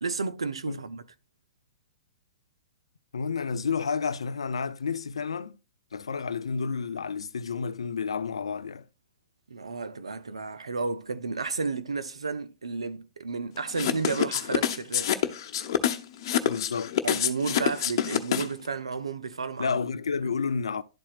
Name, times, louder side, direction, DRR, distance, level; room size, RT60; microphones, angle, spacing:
voice 1, 0.0-1.0 9.5-15.1 17.0-19.8, right 4 dB, 90° right, 0.7 m, -32 dB
voice 2, 3.1-5.5 5.9-8.8 16.4-16.9 19.6-20.8, left 5 dB, 85° left, 0.5 m, -30 dB
sound 1, 13.7-18.7, left 10 dB, 55° left, 0.9 m, -26 dB
11.5 x 4.3 x 2.4 m
hypercardioid pair, 120°, 3 cm